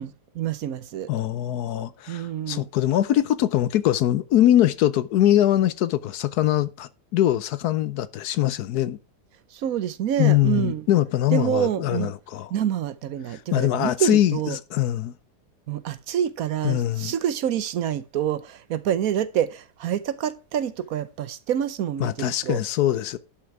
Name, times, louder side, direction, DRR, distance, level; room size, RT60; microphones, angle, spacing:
voice 1, 0.0-1.1 2.1-2.7 9.5-10.8 11.3-12.1 12.5-14.6 15.7-22.6, right 10 dB, 65° right, 1.1 m, -27 dB
voice 2, 1.1-9.0 10.2-12.5 13.3-15.1 16.6-17.1 22.0-23.2, left 12 dB, 75° left, 1.1 m, -22 dB
11.5 x 5.9 x 4.7 m
omnidirectional pair, 1.8 m